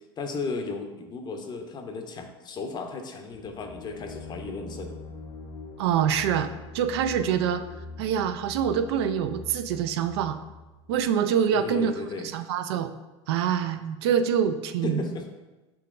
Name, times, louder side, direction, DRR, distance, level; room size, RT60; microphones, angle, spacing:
voice 1, 0.2-5.0 11.5-12.3 14.8-15.3, left 3 dB, 30° left, 5 dB, 0.6 m, -34 dB
sound 1, 3.3-11.0, left 3 dB, 65° left, 0.7 m, -43 dB
voice 2, 5.8-6.5 6.7-7.6 8.0-10.4 10.9-12.9 13.3-15.0, right 8 dB, 75° right, 9 dB, 0.4 m, -25 dB
5.5 x 3.8 x 2.5 m, 1.1 s
hypercardioid pair, 95°, 14 cm